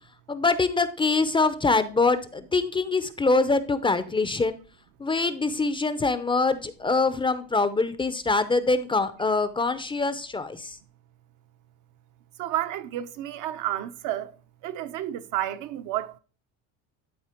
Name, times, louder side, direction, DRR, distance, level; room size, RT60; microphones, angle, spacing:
voice 1, 0.3-4.6 5.0-10.8, left 3 dB, 15° left, 0.6 m, -24 dB
voice 2, 12.4-14.3 14.6-16.2, right 13 dB, 60° right, 0.9 m, -31 dB
12.0 x 4.3 x 4.4 m
cardioid pair, 135°, 35 cm